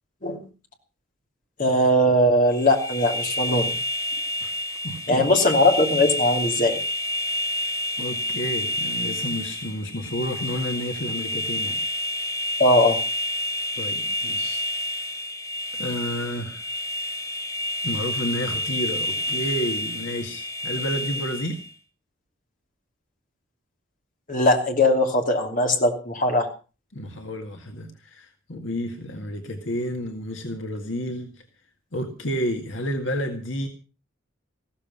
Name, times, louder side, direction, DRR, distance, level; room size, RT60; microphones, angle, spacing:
voice 1, 1.6-3.7 5.1-6.8 12.6-13.0 24.3-26.5, left 1 dB, 40° left, 3 dB, 3.0 m, -20 dB
sound 1, 2.5-21.7, left 1 dB, 15° left, 1.1 m, -29 dB
voice 2, 4.4-5.3 8.0-11.8 13.8-14.7 15.7-16.6 17.8-21.6 26.9-31.4 31.9-33.7, equal, 65° left, 5 dB, 2.0 m, -31 dB
15.5 x 13.5 x 5.5 m, 0.35 s
head